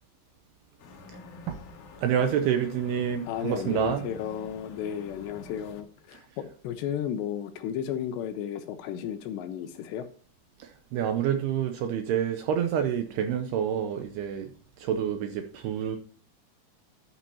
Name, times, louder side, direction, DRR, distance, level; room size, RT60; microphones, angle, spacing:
sound 1, 0.8-5.8, left 3 dB, 65° left, 2.1 m, -47 dB
voice 1, 2.0-4.1 6.1-6.2 10.6-16.0, right 8 dB, 85° right, 6 dB, 2.4 m, -28 dB
voice 2, 3.3-10.1, left 9 dB, 80° left, 9 dB, 2.7 m, -34 dB
11.5 x 9.1 x 2.9 m, 0.41 s
omnidirectional pair, 5.4 m